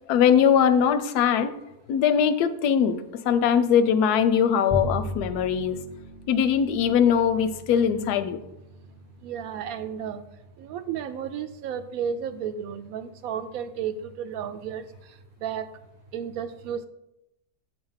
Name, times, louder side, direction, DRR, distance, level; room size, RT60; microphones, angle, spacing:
voice 1, 0.1-1.5 1.9-5.8 6.3-8.4, left 8 dB, 85° left, 11 dB, 1.1 m, -21 dB
Bowed string instrument, 4.7-11.2, equal, 25° right, 0.4 m, -38 dB
voice 2, 9.2-10.2 10.6-14.9 15.4-15.7 16.1-16.9, right 8 dB, 75° right, 10 dB, 1.0 m, -32 dB
8.2 x 2.9 x 5.5 m, 0.87 s
omnidirectional pair, 1.6 m